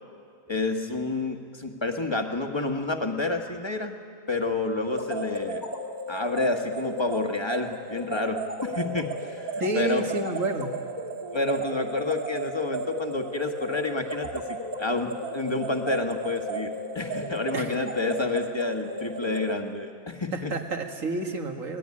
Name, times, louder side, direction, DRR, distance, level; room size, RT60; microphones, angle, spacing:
voice 1, 0.5-4.0 4.3-5.7 6.1-10.1 11.3-20.5, left 2 dB, 20° left, 4 dB, 1.5 m, -29 dB
sound 1, 4.9-19.5, right 1 dB, 30° right, 1.9 m, -34 dB
voice 2, 9.6-10.7 17.5-17.8 20.3-21.8, right 2 dB, 75° right, 3 dB, 2.3 m, -29 dB
24.0 x 19.0 x 9.8 m, 2.2 s
omnidirectional pair, 1.4 m